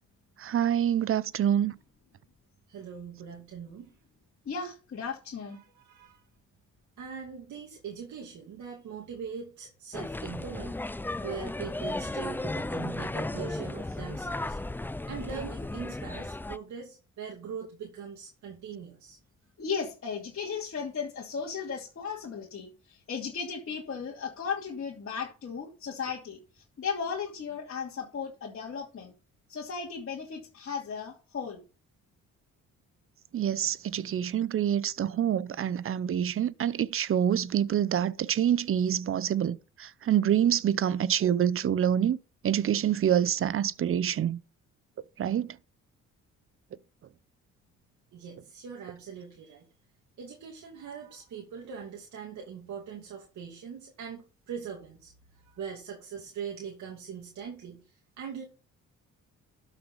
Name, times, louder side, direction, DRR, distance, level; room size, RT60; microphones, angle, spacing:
voice 1, 0.4-1.7 33.3-42.2 42.4-44.4 45.2-45.5, right 9 dB, 45° right, 0.7 m, -26 dB
voice 2, 2.7-3.9 5.5-6.2 7.0-10.8 11.2-14.6 15.1-19.2 48.1-49.7 50.2-58.4, right 7 dB, 70° right, 2.5 m, -41 dB
voice 3, 4.4-5.6 19.6-29.1 29.5-31.6, left 6 dB, 45° left, 2.6 m, -36 dB
sound 1, 9.9-16.6, left 2 dB, 5° left, 0.4 m, -35 dB
12.5 x 6.6 x 4.0 m
cardioid pair, 90°, 30 cm